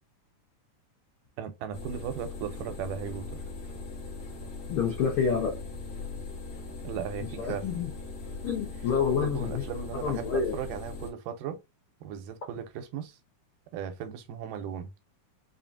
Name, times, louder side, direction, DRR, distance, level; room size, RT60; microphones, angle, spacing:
voice 1, 1.4-3.4 6.8-7.7 9.1-11.6 12.0-13.2 13.7-14.9, right 8 dB, 85° right, 2.2 m, -37 dB
sound 1, 1.7-11.1, left 4 dB, 55° left, 1.5 m, -40 dB
voice 2, 4.7-5.6 7.4-7.9 8.4-9.6 10.0-10.5, left 6 dB, 80° left, 1.2 m, -28 dB
5.5 x 2.6 x 2.4 m
omnidirectional pair, 3.8 m